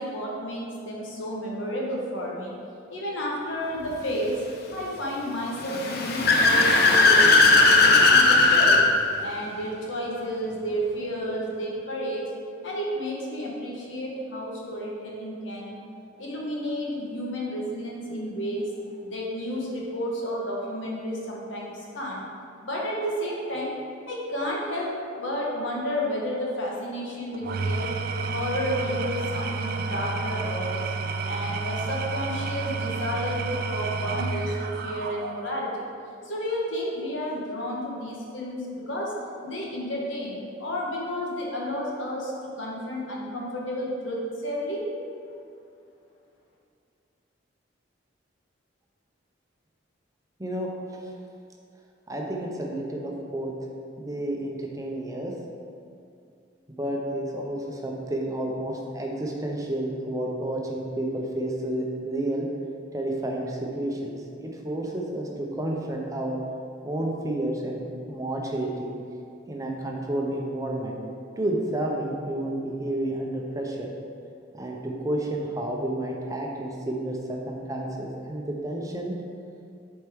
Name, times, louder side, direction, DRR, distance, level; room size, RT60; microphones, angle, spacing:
voice 1, 0.0-2.5 2.9-4.4 4.7-8.9 9.2-12.3 12.6-15.8 16.2-18.7 19.0-22.2 22.6-23.7 24.1-27.9 28.2-30.9 31.2-35.8 36.2-39.1 39.4-44.8, equal, 90° left, -3 dB, 1.3 m, -31 dB
Car / Accelerating revving vroom, 5.6-8.8, left 3 dB, 55° left, 0.6 m, -17 dB
Engine / Tools, 27.3-35.7, right 4 dB, 50° right, 0.3 m, -30 dB
voice 2, 50.4-51.0 52.1-53.5 54.0-55.3 56.8-62.5 62.9-66.4 66.8-68.9 69.5-71.0 71.4-73.9 74.5-79.1, right 1 dB, 20° right, -1 dB, 0.7 m, -30 dB
7.9 x 4.3 x 3.6 m, 2.5 s
head